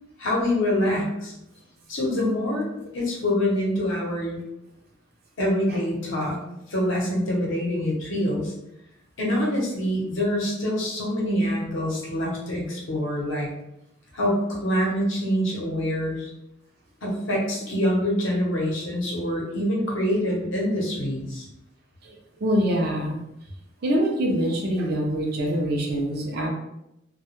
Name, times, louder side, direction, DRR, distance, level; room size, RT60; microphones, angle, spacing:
voice 1, 0.2-1.3 1.9-2.7 2.9-4.4 5.4-6.4 6.7-8.5 9.2-13.5 14.1-16.3 17.0-21.5, left 1 dB, 70° left, -3 dB, 0.7 m, -25 dB
voice 2, 22.4-23.2 23.8-26.5, equal, 50° right, 1 dB, 0.4 m, -24 dB
2.2 x 2.0 x 2.9 m, 0.84 s
head